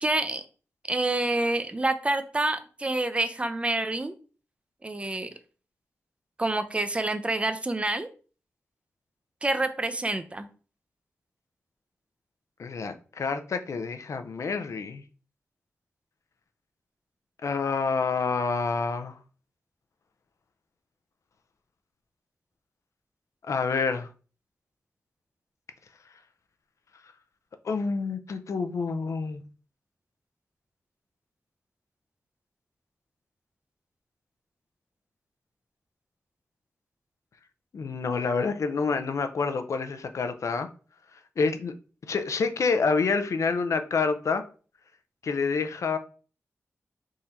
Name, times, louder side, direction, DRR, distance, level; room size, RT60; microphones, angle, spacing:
voice 1, 0.0-0.4 0.9-4.2 4.8-5.3 6.4-8.1 9.4-10.5, right 2 dB, 20° right, 0.5 m, -27 dB
voice 2, 12.6-15.0 17.4-19.2 23.5-24.1 27.6-29.4 37.7-40.7 41.4-41.7 42.1-44.4 45.2-46.0, left 4 dB, 75° left, 0.5 m, -28 dB
3.6 x 2.8 x 4.4 m
wide cardioid pair, 70°, 5 cm